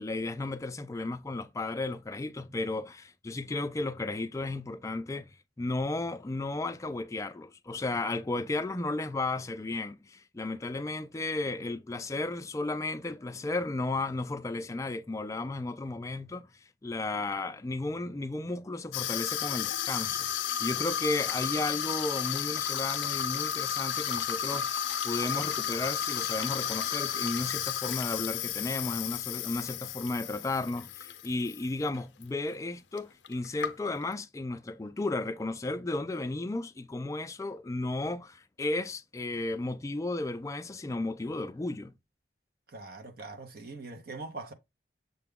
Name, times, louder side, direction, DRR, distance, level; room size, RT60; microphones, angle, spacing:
voice 1, 0.0-16.5 16.8-24.7 25.0-41.9, left 2 dB, 15° left, 0.3 m, -34 dB
Water tap faucet / Sink (filling or washing), 18.9-31.6 31.9-32.2 33.0-33.1 33.2-34.1, left 9 dB, 85° left, 0.5 m, -33 dB
voice 2, 42.7-44.5, right 3 dB, 55° right, 0.6 m, -42 dB
6.7 x 2.2 x 3.5 m
head